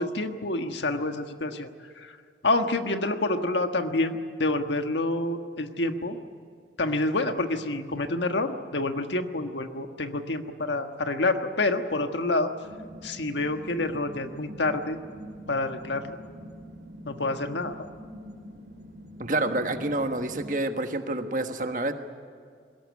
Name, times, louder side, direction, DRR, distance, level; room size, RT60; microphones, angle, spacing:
voice 1, 0.0-1.7 2.0-2.1 2.4-6.2 6.8-12.5 13.0-15.0 15.5-16.2 17.0-17.7, left 2 dB, 85° left, 6 dB, 1.5 m, -28 dB
sound 1, 12.6-20.5, equal, 75° right, 2.2 m, -44 dB
voice 2, 19.2-21.9, right 2 dB, 45° right, 7 dB, 1.4 m, -28 dB
21.5 x 18.0 x 9.6 m, 2.2 s
head